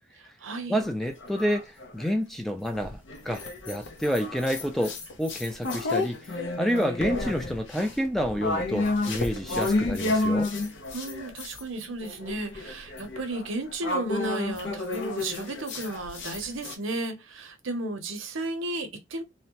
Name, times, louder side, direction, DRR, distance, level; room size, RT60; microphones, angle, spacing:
voice 1, 0.2-0.8 10.9-19.2, right 2 dB, 70° right, 0.7 m, -34 dB
voice 2, 0.7-10.5, equal, ahead, 0.3 m, -29 dB
sound 1, 0.8-2.2 2.7-11.6 12.0-16.8, left 2 dB, 60° left, 0.6 m, -31 dB
2.7 x 2.1 x 2.9 m
head